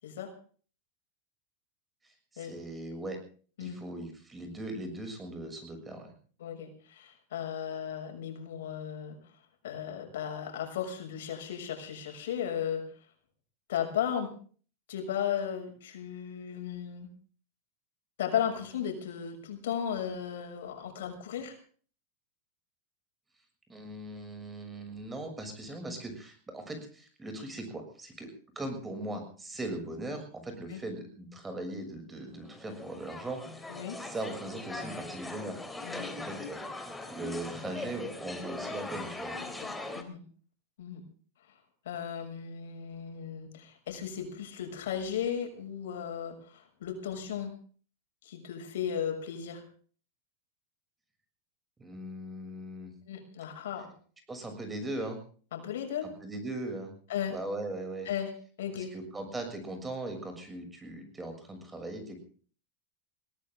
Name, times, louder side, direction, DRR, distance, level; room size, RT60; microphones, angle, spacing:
voice 1, 2.0-3.2 3.6-6.1 23.7-28.3 28.5-33.4 34.0-35.6 36.0-36.6 37.1-39.4 51.8-52.9 54.3-55.2 56.2-56.9 57.3-58.1 58.7-62.2, right 1 dB, 15° right, 6 dB, 6.7 m, -39 dB
voice 2, 6.4-9.2 9.6-12.8 13.7-14.3 14.9-17.1 18.2-21.6 30.7-30.8 33.7-34.0 35.8-36.1 39.4-40.2 40.8-41.0 41.8-47.5 48.2-49.6 53.1-53.9 55.5-56.1 57.1-57.3 58.0-58.3 58.6-58.9, left 9 dB, 80° left, 4 dB, 6.4 m, -35 dB
sound 1, 32.4-40.0, left 2 dB, 10° left, 3.2 m, -40 dB
21.0 x 18.5 x 3.7 m, 0.43 s
supercardioid pair, 125°, 0 cm